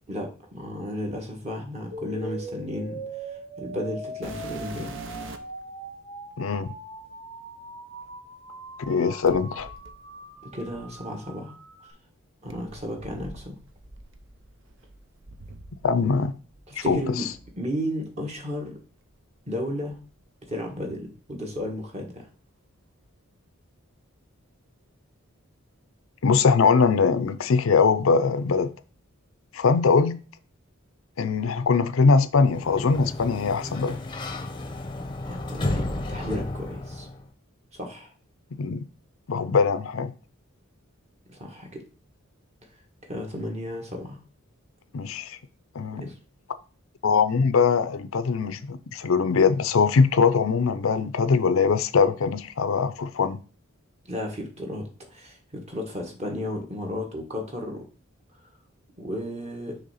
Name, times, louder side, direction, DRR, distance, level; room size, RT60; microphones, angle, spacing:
voice 1, 0.1-3.0 3.6-4.9 10.4-11.6 12.4-13.6 16.7-17.3 17.6-18.8 19.5-20.0 20.5-22.2 35.2-37.1 37.7-38.1 41.3-41.8 43.1-44.2 45.9-46.1 54.1-57.8 59.0-59.8, left 1 dB, 30° right, 1.5 m, -33 dB
sound 1, 1.9-11.9, right 2 dB, 90° right, 1.8 m, -40 dB
sound 2, 4.2-5.6 6.5-6.6 9.2-11.3 12.5-16.2 16.5-17.5 18.3-18.4 19.0-19.1 19.8-20.9 21.2-21.7 23.0-23.1, right 2 dB, 60° right, 0.7 m, -44 dB
voice 2, 6.4-6.7 8.9-9.7 15.8-16.3 16.8-17.3 26.2-28.7 29.5-30.2 31.2-34.0 38.6-38.8 39.3-40.1 44.9-45.4 45.7-46.1 47.0-53.4, left 5 dB, 70° left, 0.5 m, -22 dB
Sliding door, 32.4-37.3, left 2 dB, 20° left, 0.7 m, -32 dB
6.5 x 3.3 x 5.6 m
head